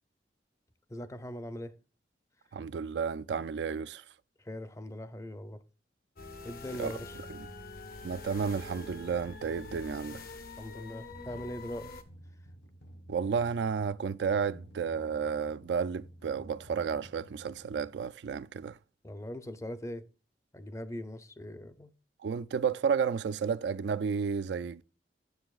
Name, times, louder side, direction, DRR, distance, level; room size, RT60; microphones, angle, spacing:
voice 1, 0.9-1.7 4.4-5.6 6.4-7.2 10.6-11.9 19.0-20.0 20.5-21.9, left 1 dB, 15° left, 0.5 m, -41 dB
voice 2, 2.5-4.0 6.8-7.0 7.3-7.5 8.0-10.2 13.1-18.8 22.2-24.8, right 6 dB, 75° right, 0.4 m, -32 dB
sound 1, 6.2-12.0, left 3 dB, 55° left, 0.9 m, -45 dB
sound 2, 11.1-18.0, right 1 dB, 85° left, 1.7 m, -53 dB
9.5 x 7.0 x 2.3 m
head